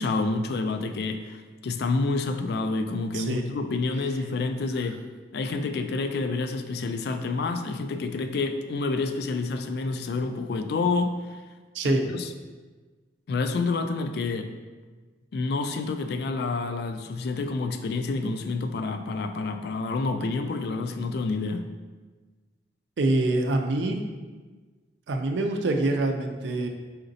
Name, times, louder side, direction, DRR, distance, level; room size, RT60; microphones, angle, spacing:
voice 1, 0.0-5.0 5.3-11.4 11.8-12.3 13.3-14.5 15.3-21.7, left 3 dB, 60° left, 8 dB, 0.3 m, -28 dB
voice 2, 11.7-12.1 23.0-24.0 25.1-26.7, right 2 dB, 85° right, 4 dB, 0.5 m, -25 dB
4.3 x 3.9 x 2.6 m, 1.3 s
head